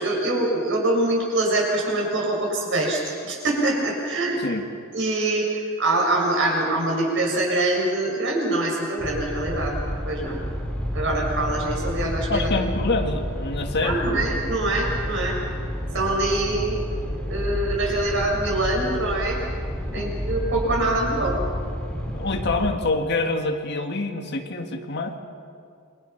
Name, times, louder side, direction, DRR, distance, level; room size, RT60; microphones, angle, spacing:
voice 1, 0.0-4.4 4.9-9.7 10.1-10.4 10.9-12.5 13.8-15.4 15.9-16.8 17.3-19.4 19.9-21.4, right 2 dB, 55° right, -1 dB, 7.0 m, -24 dB
sound 1, 9.0-22.7, equal, 5° left, 4.2 m, -30 dB
voice 2, 12.3-14.2 19.9-20.1 22.1-25.1, left 2 dB, 50° left, 4 dB, 1.9 m, -26 dB
28.5 x 24.0 x 6.0 m, 2.3 s
head